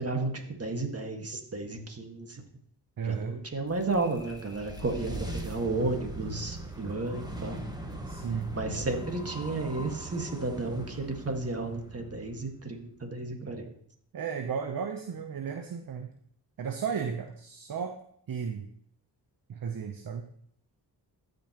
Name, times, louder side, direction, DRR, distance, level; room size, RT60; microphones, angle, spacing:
voice 1, 0.0-2.4 3.0-7.6 8.5-13.7, right 2 dB, 35° right, 4 dB, 1.8 m, -33 dB
voice 2, 3.0-3.4 8.1-8.5 14.1-16.1 16.6-18.0 18.3-18.7 19.5-20.2, right 6 dB, 55° right, 6 dB, 0.8 m, -34 dB
sound 1, 3.5-12.8, right 1 dB, 10° right, 1.5 m, -41 dB
14.0 x 5.4 x 3.0 m, 0.67 s
cardioid pair, 55°, 42 cm